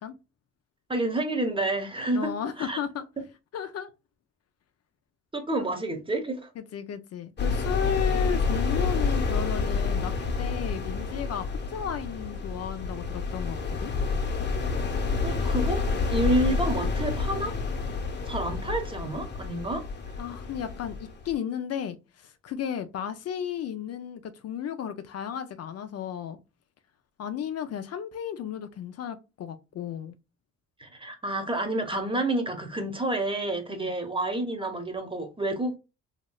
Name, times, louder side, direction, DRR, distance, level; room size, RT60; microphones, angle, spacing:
voice 1, 0.9-2.3 2.6-2.8 5.3-6.5 15.2-15.8 16.1-17.5 18.3-19.8 30.8-35.8, right 1 dB, 15° right, 0.8 m, -29 dB
voice 2, 2.1-3.0 3.5-3.9 5.6-5.7 6.6-13.9 20.2-21.0 21.2-26.4 27.2-30.1 33.7-33.9, left 9 dB, 55° left, 0.4 m, -34 dB
sound 1, 7.4-21.3, left 4 dB, 35° left, 0.9 m, -29 dB
3.0 x 2.8 x 2.2 m
cardioid pair, 90°, 30 cm